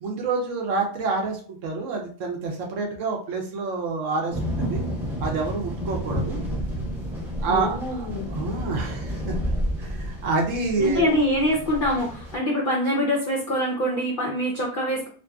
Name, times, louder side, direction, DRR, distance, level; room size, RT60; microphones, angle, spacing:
voice 1, 0.0-4.8 5.2-6.4 7.4-9.4 9.8-11.1, right 4 dB, 65° right, 1 dB, 0.9 m, -28 dB
sound 1, 4.3-12.4, equal, 5° right, 0.4 m, -30 dB
voice 2, 7.5-8.3 10.8-15.1, equal, 60° left, -3 dB, 0.5 m, -24 dB
2.9 x 2.6 x 2.2 m, 0.42 s
omnidirectional pair, 1.5 m